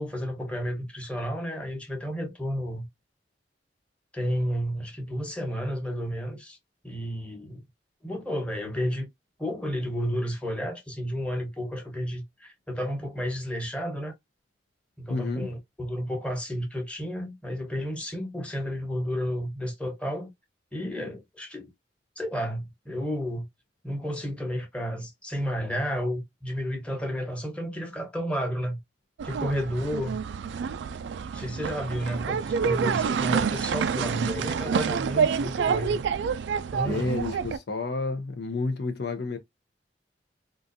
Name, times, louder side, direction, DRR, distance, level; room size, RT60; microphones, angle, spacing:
voice 1, 0.0-2.9 4.1-6.6 6.8-7.6 8.0-9.1 9.4-14.1 15.0-20.3 20.7-21.7 22.2-23.5 23.8-28.8 29.2-30.2 31.3-36.0 36.7-37.2, equal, 5° left, 1.0 m, -32 dB
voice 2, 15.1-15.5 36.8-39.4, left 3 dB, 65° left, 0.6 m, -30 dB
sound 1, 29.2-37.6, right 6 dB, 85° right, 0.3 m, -28 dB
3.8 x 2.5 x 2.6 m
head